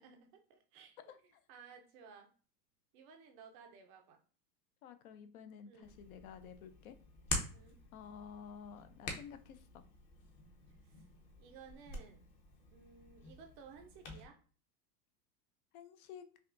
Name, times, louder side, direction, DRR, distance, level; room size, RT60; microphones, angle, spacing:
voice 1, 0.0-2.3 2.9-4.2 5.7-6.0 7.5-7.8 10.8-11.0 11.4-12.2 12.7-14.4, right 6 dB, 35° right, 4 dB, 0.4 m, -57 dB
voice 2, 4.8-7.0 7.9-9.8 15.7-16.3, left 7 dB, 60° left, 10 dB, 0.6 m, -52 dB
Hands, 5.8-14.2, left 2 dB, 35° left, 1.0 m, -46 dB
5.4 x 2.3 x 2.5 m, 0.39 s
supercardioid pair, 145°, 49 cm